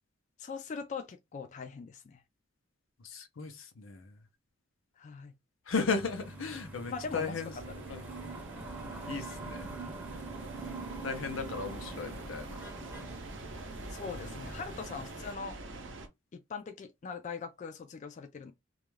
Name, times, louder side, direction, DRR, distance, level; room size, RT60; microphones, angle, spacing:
voice 1, 0.4-2.2 5.0-5.3 6.9-7.9 13.9-15.6 16.3-18.5, left 5 dB, 40° left, 0.3 m, -41 dB
voice 2, 3.0-4.0 5.7-7.5 7.9-8.0 9.1-9.6 11.0-12.6 14.3-14.5, left 4 dB, 90° left, 0.6 m, -35 dB
Tbilisi traffic ambience, 5.8-15.3, right 3 dB, 10° right, 0.6 m, -45 dB
sound 1, 7.5-16.1, right 2 dB, 65° right, 0.6 m, -45 dB
2.4 x 2.2 x 3.0 m
head